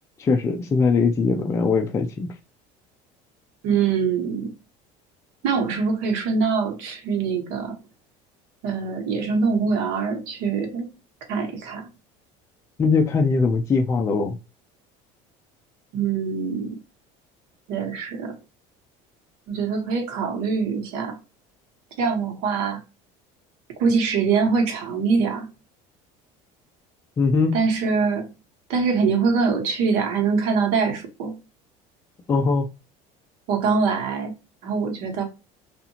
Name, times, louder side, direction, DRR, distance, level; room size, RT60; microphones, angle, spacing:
voice 1, 0.2-2.3 12.8-14.4 27.2-27.6 32.3-32.7, left 4 dB, 20° left, 0.4 m, -21 dB
voice 2, 3.6-4.5 5.4-7.8 8.6-10.9 11.3-11.9 15.9-16.8 17.7-18.4 19.5-21.2 22.0-22.8 23.8-25.4 27.5-28.3 28.7-31.4 33.5-34.3 34.6-35.2, right 5 dB, 75° right, 1.1 m, -23 dB
2.7 x 2.4 x 2.7 m
cardioid pair, 145°, 16 cm